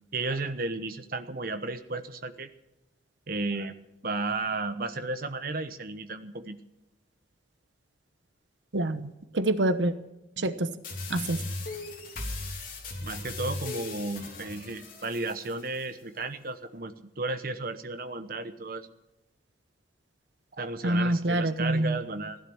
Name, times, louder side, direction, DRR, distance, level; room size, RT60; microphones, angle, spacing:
voice 1, 0.1-2.5 3.3-3.7 4.0-6.6 13.0-18.9 20.6-22.4, right 3 dB, 50° right, 9 dB, 1.1 m, -33 dB
voice 2, 8.7-9.1 9.3-9.9 10.4-10.7 11.1-11.4 20.8-22.0, right 1 dB, 85° right, 11 dB, 1.0 m, -26 dB
sound 1, 10.8-15.8, left 2 dB, 50° left, 3.7 m, -38 dB
16.5 x 12.0 x 7.1 m, 0.94 s
head